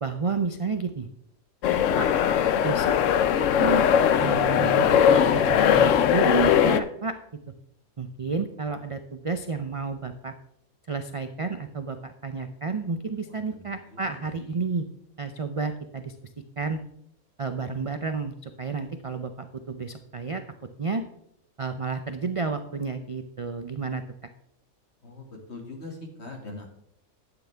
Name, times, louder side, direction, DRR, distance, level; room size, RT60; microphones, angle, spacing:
voice 1, 0.0-1.1 2.0-2.1 2.6-2.9 3.6-3.9 4.2-7.2 8.0-10.3 10.9-14.9 15.2-16.1 16.6-16.8 17.4-20.4 20.8-21.0 21.6-24.0, right 4 dB, 60° right, 8 dB, 0.3 m, -31 dB
sound 1, 1.6-6.8, left 9 dB, 65° left, 0.9 m, -20 dB
voice 2, 13.3-14.2 14.5-14.6 25.0-26.7, left 2 dB, 50° left, 2 dB, 2.3 m, -42 dB
11.5 x 9.0 x 3.4 m, 0.73 s
omnidirectional pair, 1.5 m